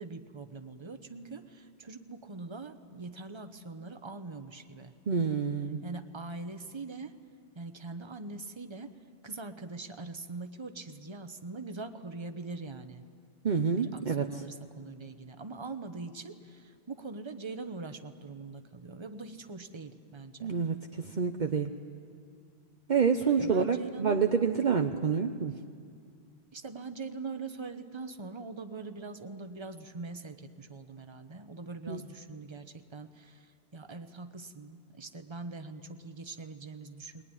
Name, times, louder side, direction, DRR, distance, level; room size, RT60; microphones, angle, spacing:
voice 1, 0.0-4.9 5.8-7.1 7.5-8.9 9.2-13.0 13.7-20.5 23.2-24.2 26.5-37.2, right 3 dB, 25° right, 8 dB, 1.1 m, -42 dB
voice 2, 5.1-5.8 13.4-14.4 20.4-21.7 22.9-25.6 31.9-32.0, right 6 dB, 50° right, 5 dB, 0.9 m, -28 dB
21.0 x 20.5 x 9.9 m, 2.2 s
omnidirectional pair, 1.1 m